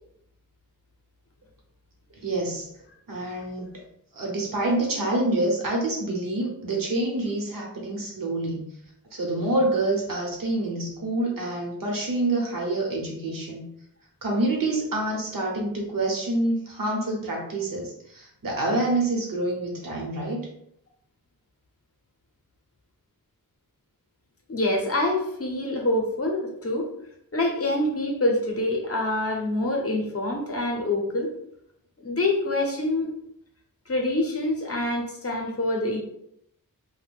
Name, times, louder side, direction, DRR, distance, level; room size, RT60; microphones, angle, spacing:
voice 1, 2.2-2.7 3.1-3.7 4.1-8.7 9.1-13.6 14.2-20.5, right 2 dB, 70° right, -1 dB, 0.9 m, -27 dB
voice 2, 24.5-26.9 27.3-31.3 32.0-33.1 33.9-36.0, left 1 dB, 45° left, 1 dB, 0.6 m, -26 dB
2.5 x 2.1 x 3.3 m, 0.73 s
wide cardioid pair, 100°, 35 cm